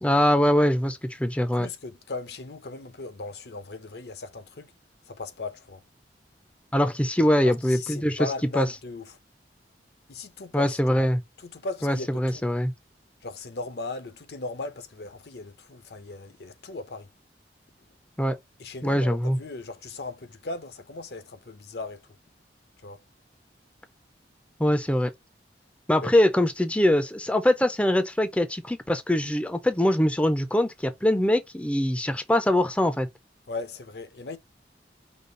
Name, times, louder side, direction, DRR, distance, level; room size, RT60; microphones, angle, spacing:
voice 1, 0.0-1.7 6.7-8.3 8.5-8.7 10.5-11.2 11.8-12.7 18.2-18.4 18.8-19.4 24.6-25.1 25.9-33.1, left 1 dB, 5° left, 0.5 m, -23 dB
voice 2, 1.6-4.7 5.1-5.8 7.4-9.2 10.1-11.1 11.4-12.4 13.2-17.1 18.6-22.0 22.8-23.0 26.0-26.2 33.5-34.4, left 3 dB, 65° left, 0.7 m, -37 dB
5.2 x 2.3 x 3.8 m
head